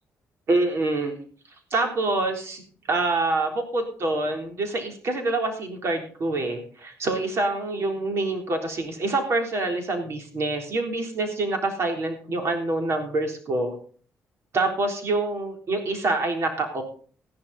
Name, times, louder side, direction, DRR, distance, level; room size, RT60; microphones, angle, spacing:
voice 1, 0.5-1.2 1.7-13.7 14.5-16.8, right 2 dB, 55° right, 4 dB, 3.7 m, -26 dB
14.0 x 11.5 x 4.2 m, 0.43 s
cardioid pair, 80°, 5 cm